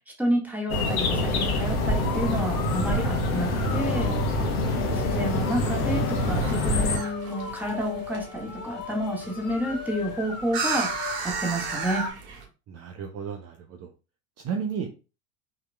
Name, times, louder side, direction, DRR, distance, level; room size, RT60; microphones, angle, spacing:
voice 1, 0.2-4.1 5.0-10.9 11.2-12.1, equal, 5° right, -1 dB, 1.6 m, -30 dB
sound 1, 0.7-7.0, left 1 dB, 80° left, 1.2 m, -25 dB
sound 2, 1.8-12.1, left 7 dB, 50° left, 1.4 m, -38 dB
voice 2, 4.6-5.0 12.7-13.9 14.4-14.9, right 6 dB, 35° right, 3 dB, 0.7 m, -33 dB
sound 3, 6.0-12.4, right 4 dB, 55° right, 1.8 m, -35 dB
5.6 x 2.9 x 2.3 m, 0.33 s
hypercardioid pair, 80°, 42 cm